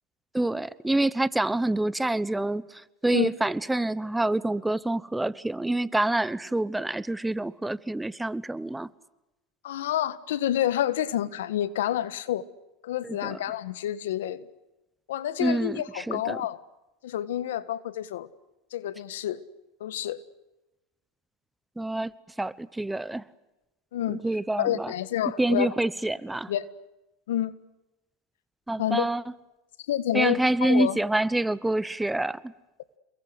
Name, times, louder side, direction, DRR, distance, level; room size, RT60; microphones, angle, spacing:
voice 1, 0.3-8.9 13.0-13.4 15.4-16.4 21.8-22.1 22.4-23.2 24.1-24.9 25.4-26.5 28.7-29.2 30.1-32.5, right 2 dB, 5° right, 18 dB, 0.9 m, -27 dB
voice 2, 9.6-12.4 12.8-14.5 15.1-16.6 17.0-18.3 18.7-19.4 19.8-20.2 23.9-24.2 24.6-25.7 26.5-26.7 27.3-27.5 28.8-29.1 29.9-31.0, left 12 dB, 85° left, 15 dB, 1.6 m, -28 dB
29.0 x 22.0 x 8.0 m, 0.99 s
supercardioid pair, 115°, 0 cm